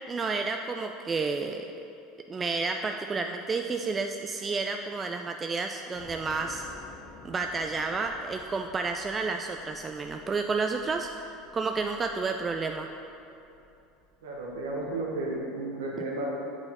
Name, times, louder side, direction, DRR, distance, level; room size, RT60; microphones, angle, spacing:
voice 1, 0.1-1.6 2.3-6.6 7.2-11.1 11.5-12.9, right 4 dB, 25° right, 4 dB, 0.3 m, -30 dB
Train / Subway metro underground, 5.9-15.4, left 4 dB, 45° left, 0.8 m, -53 dB
voice 2, 14.2-16.3, right 2 dB, 80° right, -3 dB, 0.9 m, -33 dB
7.6 x 4.5 x 4.2 m, 2.8 s
hypercardioid pair, 90°, 0 cm